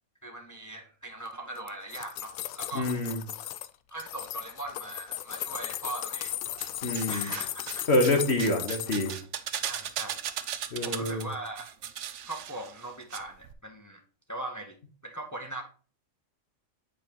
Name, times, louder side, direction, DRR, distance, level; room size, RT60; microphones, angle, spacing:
voice 1, 0.2-2.9 3.9-6.3 7.1-7.9 9.7-10.2 10.8-11.7 12.2-14.0 14.3-14.8 15.0-15.6, right 2 dB, 15° left, 3 dB, 1.0 m, -40 dB
sound 1, 1.6-3.7 4.0-9.2 9.6-10.2 10.4-10.5, left 12 dB, 80° left, 1.0 m, -37 dB
voice 2, 2.7-3.2 6.8-7.3 7.9-9.1 10.7-11.3, left 1 dB, 50° left, 3 dB, 1.4 m, -26 dB
sound 2, 6.2-7.1 7.3-13.2 13.4-13.5, right 9 dB, 60° right, 0.9 m, -37 dB
9.0 x 5.1 x 3.0 m, 0.39 s
omnidirectional pair, 1.5 m